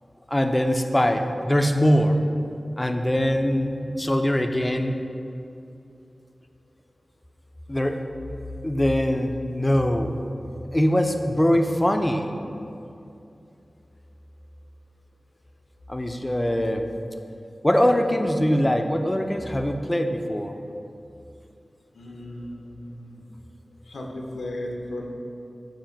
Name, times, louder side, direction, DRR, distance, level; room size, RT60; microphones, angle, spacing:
voice 1, 0.3-2.2 2.8-4.9 7.7-8.0 8.6-10.2 10.7-12.3 15.9-16.9 17.6-20.5, equal, 15° left, 5 dB, 0.3 m, -22 dB
voice 2, 21.9-23.2 23.9-25.1, left 1 dB, 90° left, 0 dB, 0.6 m, -35 dB
7.2 x 2.6 x 5.1 m, 2.6 s
wide cardioid pair, 90°, 0 cm